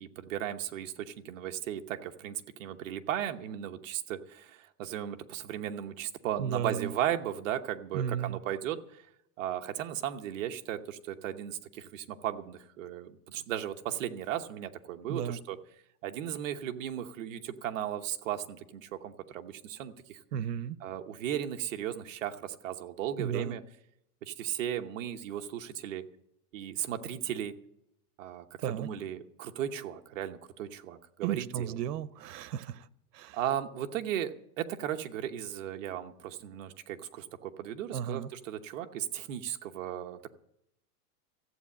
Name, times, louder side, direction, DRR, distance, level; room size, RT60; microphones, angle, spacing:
voice 1, 0.0-9.1 9.4-15.6 16.0-20.2 20.8-23.6 24.2-26.0 26.5-27.5 28.2-31.8 33.3-40.3, right 10 dB, 55° right, 1.0 m, -36 dB
voice 2, 6.4-6.9 7.9-8.4 15.1-15.4 20.3-20.8 23.2-23.6 28.6-28.9 31.2-32.9 33.1-33.4 37.9-38.3, right 9 dB, 85° right, 0.9 m, -34 dB
14.5 x 8.4 x 8.5 m
supercardioid pair, 170°, 47 cm